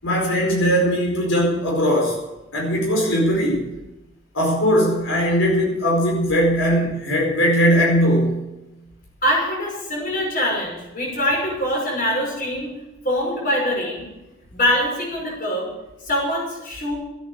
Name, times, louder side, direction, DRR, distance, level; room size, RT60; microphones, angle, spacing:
voice 1, 0.0-2.2 2.5-3.7 4.3-8.4, equal, 75° left, -2 dB, 4.9 m, -19 dB
voice 2, 9.2-12.7 13.0-14.1 14.5-15.7 16.0-17.0, equal, 40° left, -1 dB, 5.9 m, -23 dB
14.5 x 9.9 x 8.3 m, 1.0 s
head